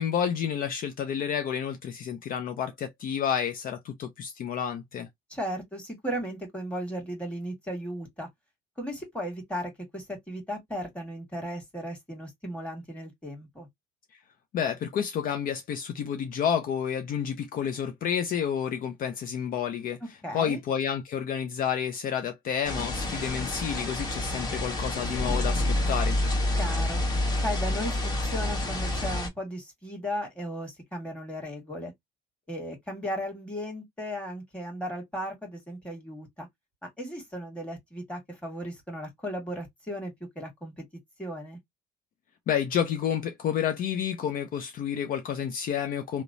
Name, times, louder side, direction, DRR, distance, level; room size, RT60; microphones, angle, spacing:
voice 1, 0.0-5.1 14.5-20.0 20.3-26.2 42.5-46.2, left 8 dB, 55° left, 0.6 m, -30 dB
voice 2, 5.3-8.3 8.8-13.7 20.2-20.6 26.6-27.0 27.4-31.9 32.5-36.5 37.0-40.8 41.2-41.6, equal, 5° left, 1.6 m, -36 dB
sound 1, 22.6-29.3, left 1 dB, 25° left, 1.3 m, -28 dB
2.9 x 2.1 x 2.5 m
cardioid pair, 110°, 17 cm